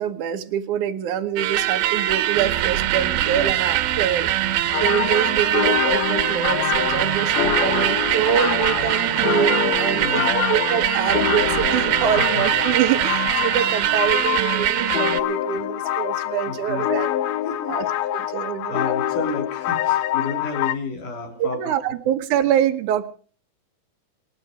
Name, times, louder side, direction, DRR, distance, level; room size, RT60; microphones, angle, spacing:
voice 1, 0.0-4.3 4.7-17.1 17.7-19.0 21.4-23.1, right 10 dB, 65° right, 7 dB, 2.6 m, -25 dB
sound 1, 1.4-15.2, right 13 dB, 90° right, 2.9 m, -22 dB
sound 2, 4.7-20.7, left 13 dB, 85° left, 2.8 m, -25 dB
voice 2, 7.4-7.8 9.9-10.5 11.9-12.4 15.5-15.6 16.5-16.9 17.5-17.8 18.1-18.2 18.6-21.6 21.9-22.0, left 4 dB, 60° left, 5 dB, 4.6 m, -32 dB
27.5 x 10.0 x 5.1 m, 0.43 s
omnidirectional pair, 4.2 m